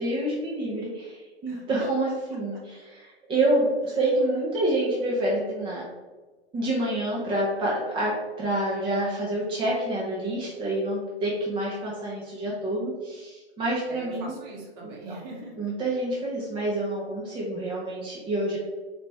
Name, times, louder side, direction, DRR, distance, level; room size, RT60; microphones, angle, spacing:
voice 1, 0.0-5.8 6.5-14.4 14.8-14.9 15.6-18.6, right 1 dB, 15° right, -5 dB, 0.9 m, -27 dB
voice 2, 1.5-1.9 3.9-4.1 13.9-15.5, right 2 dB, 40° right, -2 dB, 1.3 m, -41 dB
4.2 x 3.2 x 3.4 m, 1.3 s
figure-of-eight pair, 110°, 33 cm